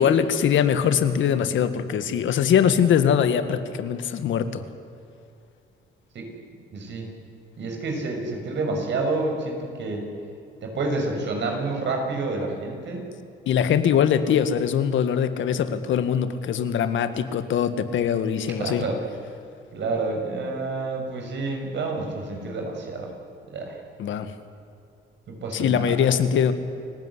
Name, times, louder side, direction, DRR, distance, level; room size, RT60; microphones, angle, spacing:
voice 1, 0.0-4.6 13.4-18.8 24.0-24.3 25.5-26.5, left 8 dB, 75° left, 10 dB, 1.8 m, -22 dB
voice 2, 6.7-7.1 7.6-10.1 10.6-13.1 18.6-19.0 19.7-23.1 23.5-23.8 25.3-26.1, right 3 dB, 65° right, 2 dB, 6.6 m, -29 dB
29.5 x 16.0 x 9.9 m, 2.5 s
cardioid pair, 90°, 20 cm